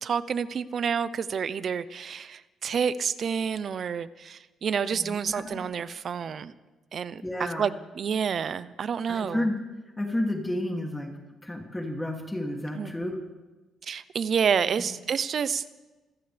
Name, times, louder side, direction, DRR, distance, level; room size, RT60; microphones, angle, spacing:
voice 1, 0.0-6.5 6.9-9.5 12.7-12.9 13.8-15.7, right 7 dB, 55° right, 15 dB, 0.7 m, -29 dB
voice 2, 4.9-5.6 7.2-7.7 9.1-9.6 10.0-11.1 11.4-13.2 14.8-14.9, left 1 dB, 10° left, 1 dB, 2.6 m, -31 dB
27.0 x 14.0 x 3.4 m, 1.1 s
cardioid pair, 90°, 0 cm